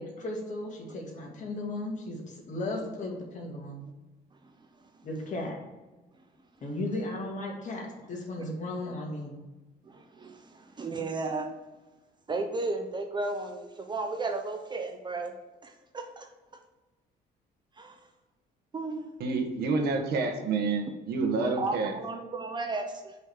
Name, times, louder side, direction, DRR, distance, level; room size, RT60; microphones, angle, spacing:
voice 1, 0.0-3.8 5.0-5.6 6.6-9.3, left 2 dB, 45° left, 0 dB, 2.2 m, -35 dB
voice 2, 9.8-11.5 12.3-15.3 15.6-16.3 17.8-18.0 18.7-19.1 21.6-23.1, right 3 dB, 25° right, 5 dB, 0.8 m, -34 dB
voice 3, 19.2-21.9, right 4 dB, 75° right, 4 dB, 1.4 m, -28 dB
5.5 x 5.2 x 6.7 m, 1.1 s
cardioid pair, 110°, 17 cm